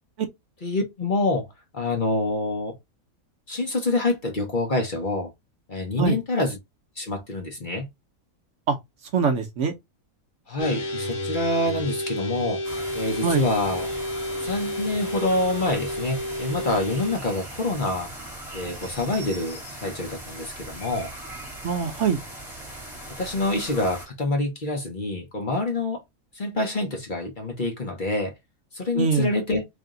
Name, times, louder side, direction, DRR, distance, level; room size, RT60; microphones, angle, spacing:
voice 1, 0.6-1.5 1.7-2.7 3.5-5.3 5.7-6.6 7.0-7.9 10.5-12.6 12.9-13.9 14.4-18.1 18.5-21.1 23.2-26.0 26.3-28.3 28.7-29.7, left 2 dB, 40° left, 0.9 m, -26 dB
voice 2, 9.1-9.7 13.2-13.5 21.6-22.2 28.9-29.3, right 5 dB, 60° right, 0.9 m, -23 dB
sound 1, 10.6-17.2, left 1 dB, 90° left, 1.8 m, -31 dB
sound 2, 12.6-24.1, right 1 dB, ahead, 1.5 m, -39 dB
3.3 x 2.7 x 3.7 m
omnidirectional pair, 1.6 m